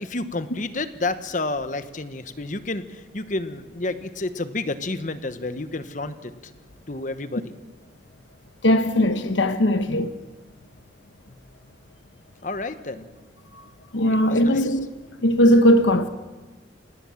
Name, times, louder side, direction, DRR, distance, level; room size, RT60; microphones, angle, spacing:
voice 1, 0.0-6.3 6.9-7.5 12.4-13.1 14.1-14.8, left 2 dB, 45° left, 1.1 m, -30 dB
voice 2, 8.6-10.1 13.9-14.9 15.2-16.1, equal, 85° left, 1.1 m, -18 dB
25.0 x 18.5 x 7.2 m
head